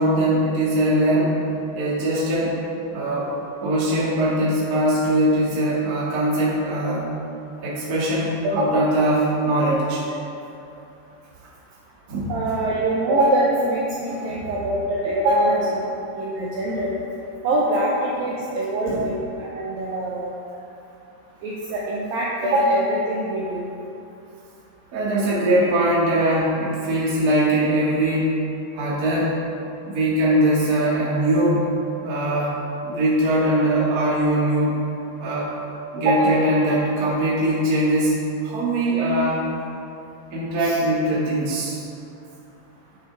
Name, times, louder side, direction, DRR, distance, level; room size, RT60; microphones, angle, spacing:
voice 1, 0.0-1.4 1.7-2.5 2.9-3.3 3.6-7.1 7.6-10.0 12.1-12.3 14.1-14.3 18.9-19.0 24.9-28.4 28.7-29.4 29.8-31.7 32.0-32.6 32.8-34.8 35.2-35.5 35.9-39.5 40.3-41.8, right 1 dB, 45° right, -8 dB, 1.2 m, -21 dB
voice 2, 12.3-15.8 16.2-16.9 17.4-20.3 21.4-23.7 36.1-36.4 40.6-40.8, right 1 dB, 85° right, -5 dB, 2.0 m, -23 dB
9.2 x 8.6 x 3.5 m, 2.7 s
omnidirectional pair, 5.2 m